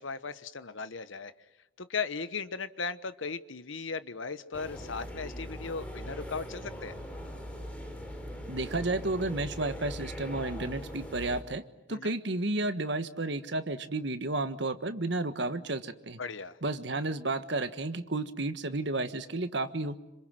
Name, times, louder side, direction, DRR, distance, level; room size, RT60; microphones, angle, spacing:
voice 1, 0.0-1.3 1.8-6.9 11.9-12.1 16.2-16.6, left 5 dB, 75° left, 13 dB, 1.1 m, -37 dB
sound 1, 4.5-11.4, equal, 5° left, 4.2 m, -41 dB
voice 2, 8.5-11.6 11.9-16.2 16.6-20.0, right 2 dB, 60° right, 10 dB, 1.4 m, -32 dB
27.0 x 26.0 x 7.7 m, 0.95 s
head